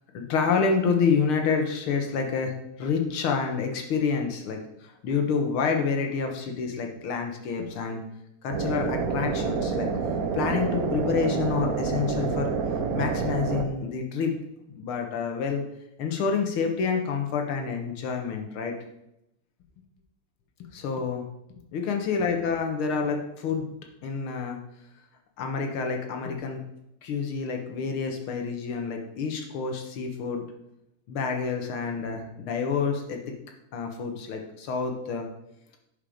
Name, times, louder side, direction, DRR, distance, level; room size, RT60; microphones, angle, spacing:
voice 1, 0.1-4.6 5.0-8.0 8.4-9.9 10.3-12.5 12.9-14.3 14.8-15.6 16.0-18.7 20.7-21.2 21.7-23.7 24.0-24.6 25.4-26.6 27.0-30.4 31.1-33.2 33.7-35.3, left 5 dB, 80° left, 3 dB, 2.1 m, -28 dB
sound 1, 8.5-13.7, right 5 dB, 60° right, 1.0 m, -28 dB
10.5 x 5.4 x 5.1 m, 0.84 s
omnidirectional pair, 2.3 m